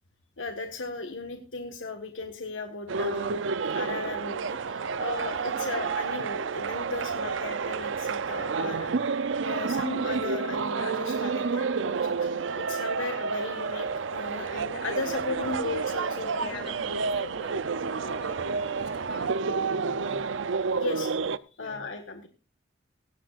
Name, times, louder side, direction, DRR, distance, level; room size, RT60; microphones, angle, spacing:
voice 1, 0.4-3.3 3.7-9.2 9.4-16.7 20.7-21.3 21.6-22.3, left 3 dB, 85° left, 1.5 m, -36 dB
sound 1, 2.9-21.4, right 5 dB, 80° right, 0.6 m, -30 dB
voice 2, 16.1-20.4 21.6-21.8, left 2 dB, 55° left, 3.4 m, -46 dB
17.5 x 16.0 x 2.5 m
head